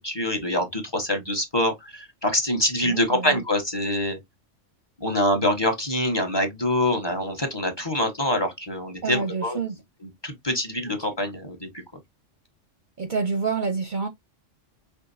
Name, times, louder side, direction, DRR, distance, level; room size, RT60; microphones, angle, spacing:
voice 1, 0.0-4.2 5.0-9.6 10.2-11.7, left 1 dB, 20° left, 1.1 m, -25 dB
voice 2, 2.8-3.4 9.0-9.8 13.0-14.1, right 4 dB, 50° right, 0.7 m, -28 dB
5.8 x 3.2 x 2.6 m
omnidirectional pair, 1.3 m